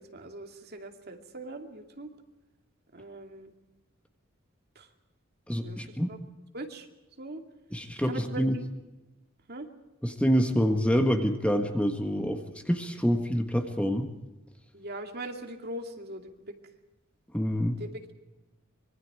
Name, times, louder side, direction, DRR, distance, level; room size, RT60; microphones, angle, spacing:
voice 1, 0.0-2.1 2.9-3.5 4.7-4.9 5.6-6.2 6.5-6.9 7.2-7.4 8.0-8.7 9.5-9.7 14.7-16.6 17.8-18.1, right 1 dB, 50° right, 4 dB, 2.4 m, -41 dB
voice 2, 5.5-6.1 7.7-8.5 10.0-14.1 17.3-17.7, equal, 5° left, 4 dB, 1.6 m, -26 dB
25.5 x 23.5 x 4.9 m, 1.0 s
head